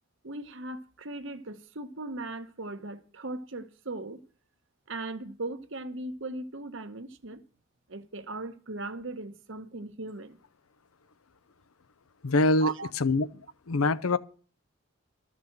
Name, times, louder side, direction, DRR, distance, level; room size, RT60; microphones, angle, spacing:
voice 1, 0.2-4.2 4.9-7.4 7.9-10.4 12.6-12.9, right 2 dB, 60° right, 1.0 m, -38 dB
voice 2, 12.2-14.2, left 2 dB, 90° left, 0.7 m, -25 dB
13.0 x 6.2 x 8.6 m
head